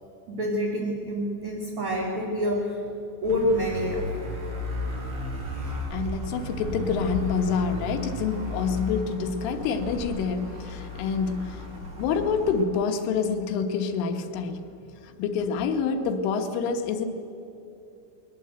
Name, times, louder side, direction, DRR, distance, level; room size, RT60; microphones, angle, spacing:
voice 1, 0.3-2.8 3.2-4.1, left 1 dB, 35° right, -2 dB, 3.0 m, -27 dB
sound 1, 3.2-12.6, left 1 dB, 55° right, 6.8 m, -35 dB
voice 2, 5.7-14.7 15.0-17.1, left 5 dB, 75° left, 6 dB, 3.6 m, -27 dB
21.5 x 19.0 x 7.9 m, 2.8 s
omnidirectional pair, 5.9 m